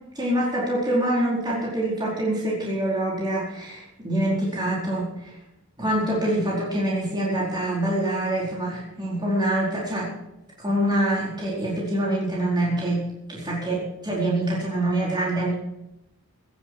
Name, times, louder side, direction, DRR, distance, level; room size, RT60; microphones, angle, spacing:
voice 1, 0.1-5.3 5.8-10.1 10.6-13.0 13.3-15.5, right 1 dB, 20° right, -6 dB, 4.5 m, -25 dB
16.5 x 12.0 x 4.8 m, 0.87 s
head